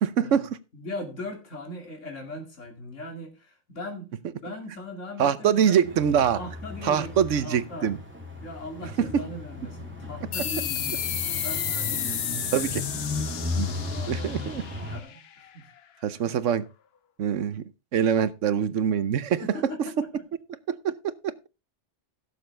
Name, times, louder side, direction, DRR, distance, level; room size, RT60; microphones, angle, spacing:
voice 1, 0.0-0.6 5.2-6.4 6.8-8.0 9.0-9.2 12.5-12.8 13.5-13.7 14.1-14.6 16.0-16.6 17.2-17.6 17.9-19.4 20.7-21.5, right 8 dB, 85° right, 1.2 m, -24 dB
voice 2, 0.7-5.8 6.3-8.0 8.4-15.7 19.4-20.1, left 1 dB, 80° left, 2.7 m, -40 dB
sound 1, 5.8-15.0, left 3 dB, 10° right, 2.3 m, -35 dB
sound 2, 10.3-15.5, left 9 dB, 60° left, 1.0 m, -32 dB
16.5 x 7.0 x 3.3 m
omnidirectional pair, 1.2 m